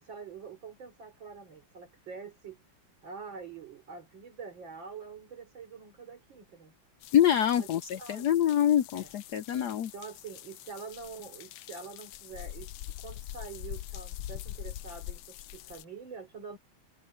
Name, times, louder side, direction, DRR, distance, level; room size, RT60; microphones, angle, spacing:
voice 1, 0.0-2.6 3.0-6.7 7.6-7.7 8.0-8.3 8.9-9.1 9.9-16.6, right 5 dB, 60° right, 3.9 m, -45 dB
sound 1, 7.0-15.9, left 13 dB, 90° left, 1.6 m, -44 dB
voice 2, 7.1-9.9, left 10 dB, 70° left, 1.0 m, -25 dB
omnidirectional pair, 2.3 m